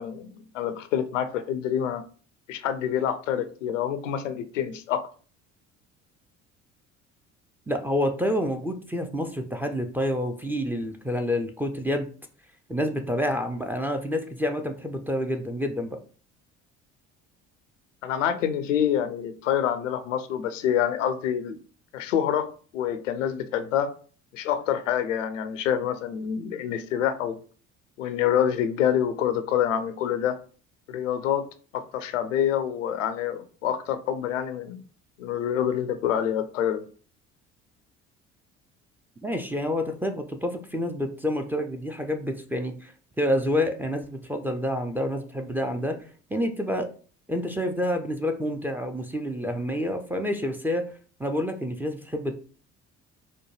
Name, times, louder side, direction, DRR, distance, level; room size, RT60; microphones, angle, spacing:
voice 1, 0.0-2.0 2.5-5.1 18.0-21.6 21.9-22.5 22.7-23.9 24.3-27.4 28.0-30.4 30.9-31.5 31.7-34.8 35.2-36.9, left 9 dB, 80° left, 10 dB, 0.5 m, -26 dB
voice 2, 7.7-12.1 12.7-16.0 39.2-42.9 43.2-46.9 47.3-50.9 51.2-52.4, equal, 5° right, 5 dB, 0.4 m, -28 dB
4.0 x 2.2 x 3.1 m, 0.41 s
figure-of-eight pair, 55°, 37 cm